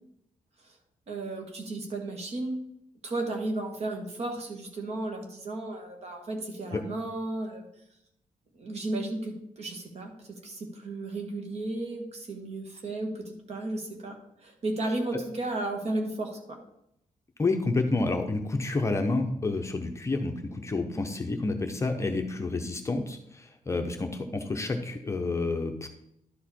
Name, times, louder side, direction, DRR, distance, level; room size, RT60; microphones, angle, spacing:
voice 1, 1.1-2.6 3.0-7.7 8.5-16.6, right 2 dB, 50° right, 3 dB, 1.6 m, -34 dB
voice 2, 17.4-25.9, left 3 dB, 20° left, 4 dB, 0.7 m, -29 dB
11.5 x 4.8 x 4.3 m, 0.79 s
wide cardioid pair, 170°, 14 cm